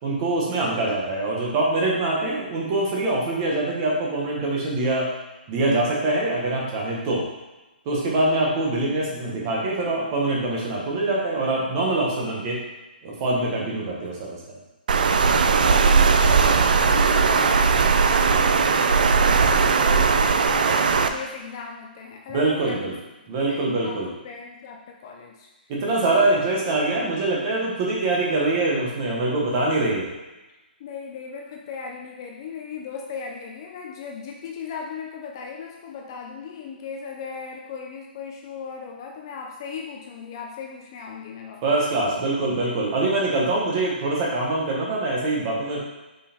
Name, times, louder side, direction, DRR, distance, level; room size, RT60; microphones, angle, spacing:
voice 1, 0.0-5.1 5.5-7.2 7.8-12.6 13.0-14.4 22.3-22.9 23.3-24.1 25.7-30.1 41.6-45.8, right 2 dB, 20° right, -3 dB, 1.2 m, -24 dB
Water, 14.9-21.1, right 5 dB, 55° right, 0.5 m, -18 dB
voice 2, 15.8-25.7 26.1-26.3 30.8-41.8, left 6 dB, 25° left, 1 dB, 0.5 m, -38 dB
5.5 x 5.1 x 4.3 m, 1.1 s
hypercardioid pair, 175°, 6 cm